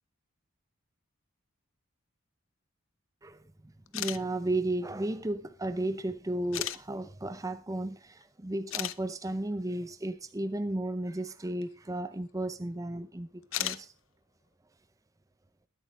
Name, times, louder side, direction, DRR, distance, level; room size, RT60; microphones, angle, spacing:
voice 1, 3.2-13.9, right 1 dB, 15° right, 0.6 m, -34 dB
sound 1, 3.9-4.2 5.2-5.3 6.5-6.8 8.2-8.3 8.7-9.0 11.6-11.7 13.4-13.8, left 13 dB, 65° left, 0.7 m, -33 dB
22.0 x 8.4 x 3.3 m
head